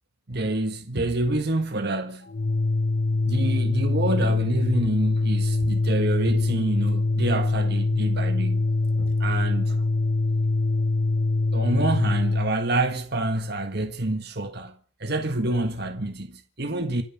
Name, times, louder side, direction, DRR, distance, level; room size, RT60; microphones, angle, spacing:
voice 1, 0.3-2.3 3.2-8.7 9.0-9.8 11.5-17.0, right 2 dB, 50° right, 1.6 m, -27 dB
Organ, 2.3-12.6, left 2 dB, 45° left, 0.8 m, -23 dB
26.0 x 9.7 x 5.7 m
head